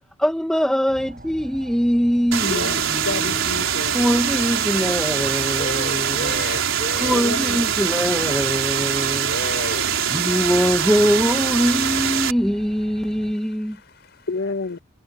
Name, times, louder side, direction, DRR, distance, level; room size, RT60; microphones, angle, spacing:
voice 1, 0.2-3.4 3.9-6.4 7.0-9.3 10.1-13.8, equal, 5° left, 1.2 m, -22 dB
sound 1, 0.9-13.3, right 1 dB, 45° right, 7.6 m, -42 dB
sound 2, 2.3-12.3, right 8 dB, 75° right, 4.2 m, -23 dB
voice 2, 2.4-2.8 3.0-3.9 7.1-7.7 14.3-14.8, left 3 dB, 70° left, 2.2 m, -28 dB
voice 3, 5.6-7.3 9.2-10.3 12.8-14.3, left 2 dB, 55° left, 7.0 m, -33 dB
head